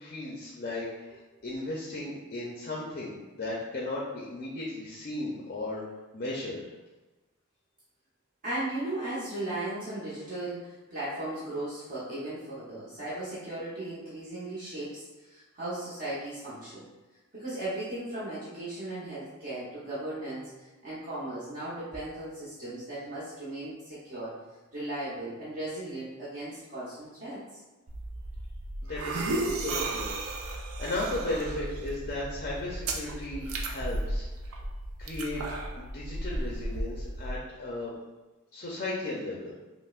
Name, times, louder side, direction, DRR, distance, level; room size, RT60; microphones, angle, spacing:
voice 1, 0.0-5.8 6.1-6.6 28.9-34.6 35.0-35.4 35.7-37.9 38.5-39.5, left 2 dB, 40° left, -4 dB, 0.5 m, -36 dB
voice 2, 8.4-16.8 17.3-24.4 24.7-27.4, right 1 dB, 40° right, -10 dB, 0.9 m, -37 dB
sound 1, 27.9-37.4, right 2 dB, 70° right, 0.5 m, -34 dB
5.4 x 2.1 x 2.4 m, 1.2 s
head